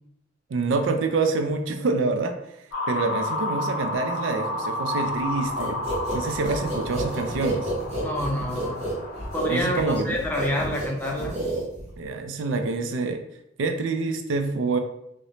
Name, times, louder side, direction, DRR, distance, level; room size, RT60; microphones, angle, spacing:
voice 1, 0.5-2.3 2.9-5.8 6.1-7.7 9.5-10.2 12.0-13.2 13.6-14.8, right 3 dB, 75° right, 6 dB, 0.4 m, -26 dB
sound 1, 2.7-9.6, left 2 dB, 90° left, 0.7 m, -31 dB
sound 2, 5.6-12.1, right 1 dB, 35° right, 0.8 m, -31 dB
voice 2, 8.0-8.8 9.3-11.4, left 1 dB, 10° left, -1 dB, 0.4 m, -27 dB
2.5 x 2.0 x 2.9 m, 0.78 s
head